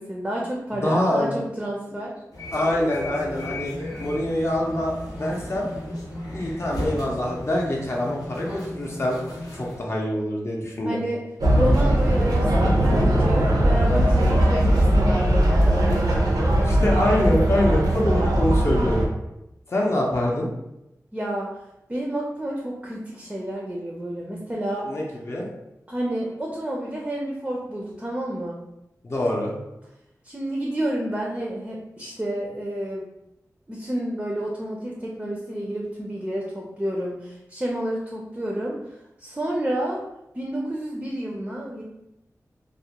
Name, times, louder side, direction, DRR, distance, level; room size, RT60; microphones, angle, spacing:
voice 1, 0.0-2.1 10.8-11.2 11.5-16.1 21.1-21.5 21.9-24.9 25.9-28.6 30.2-33.0 33.7-38.8 39.2-40.0 40.3-41.8, right 1 dB, 15° right, -2 dB, 0.4 m, -30 dB
voice 2, 0.7-1.4 2.5-3.7 4.0-5.7 6.3-9.2 9.5-11.0 16.6-19.1 19.7-20.5 24.9-25.5 29.0-29.5, left 1 dB, 45° left, -3 dB, 0.5 m, -25 dB
sound 1, 2.3-9.8, left 1 dB, 85° left, 0.7 m, -35 dB
sound 2, 11.4-19.0, right 1 dB, 80° right, 0.5 m, -19 dB
2.3 x 2.0 x 2.8 m, 0.89 s
wide cardioid pair, 85°, 6 cm